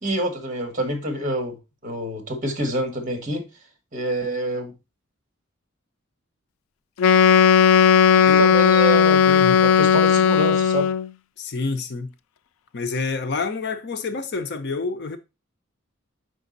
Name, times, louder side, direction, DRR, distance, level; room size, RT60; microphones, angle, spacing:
voice 1, 0.0-1.6 1.8-3.5 3.9-4.7 8.1-9.2 9.6-10.9, right 1 dB, 40° right, 1.7 m, -26 dB
Wind instrument woodwind instrument, 7.0-11.1, left 7 dB, 90° left, 0.4 m, -16 dB
voice 2, 9.2-9.6 11.4-12.1 12.7-15.2, left 4 dB, 55° left, 0.7 m, -28 dB
5.1 x 5.1 x 3.9 m
head